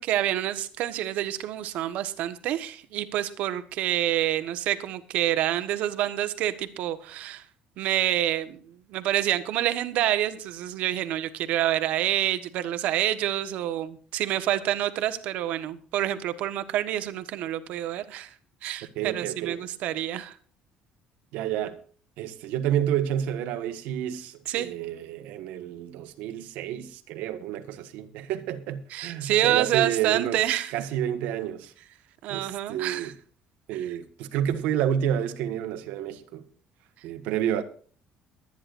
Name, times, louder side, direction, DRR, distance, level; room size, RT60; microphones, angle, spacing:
voice 1, 0.0-7.4 7.8-18.3 18.6-20.4 24.5-24.7 28.9-30.7 32.2-33.1 33.7-33.8, right 12 dB, 60° right, 1.2 m, -27 dB
voice 2, 18.9-19.6 21.3-21.8 22.2-30.4 30.7-31.7 32.3-33.1 33.7-36.4 37.0-37.6, right 10 dB, 85° right, 1.5 m, -29 dB
22.0 x 9.9 x 2.6 m
cardioid pair, 170°, 3 cm